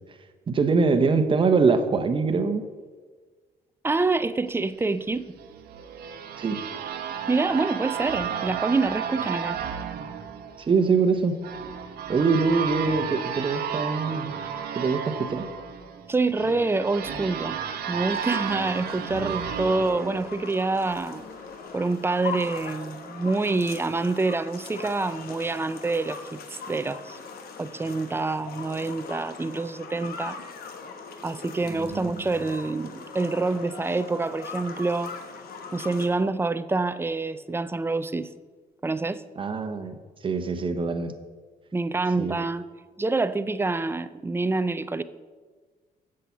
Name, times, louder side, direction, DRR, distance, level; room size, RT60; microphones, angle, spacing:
voice 1, 0.5-2.6 6.4-6.6 10.6-11.4 12.1-14.4 14.7-15.5 31.7-32.3 39.4-39.9 40.2-41.1 42.2-42.3, right 4 dB, 35° right, 1.0 m, -23 dB
voice 2, 3.8-5.3 7.3-9.6 16.1-17.6 17.9-21.2 21.7-27.2 27.6-30.4 31.2-35.1 35.7-38.3 38.8-39.2 41.7-42.6 43.0-45.0, right 3 dB, 15° right, 0.4 m, -26 dB
sound 1, 5.4-21.1, right 8 dB, 80° right, 0.9 m, -33 dB
sound 2, 18.1-36.1, left 4 dB, 75° left, 1.2 m, -40 dB
8.1 x 7.6 x 7.0 m
cardioid pair, 115°, 16 cm